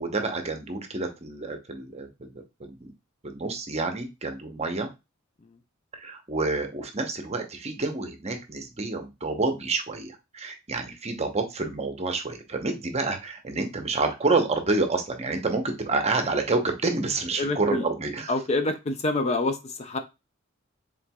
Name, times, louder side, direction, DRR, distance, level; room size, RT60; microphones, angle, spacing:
voice 1, 0.0-2.3 2.6-2.9 3.2-4.9 5.9-18.3, right 3 dB, 30° right, 5 dB, 0.8 m, -28 dB
voice 2, 17.4-17.9 18.3-20.0, left 2 dB, 30° left, 8 dB, 0.5 m, -26 dB
4.4 x 3.8 x 2.2 m, 0.24 s
head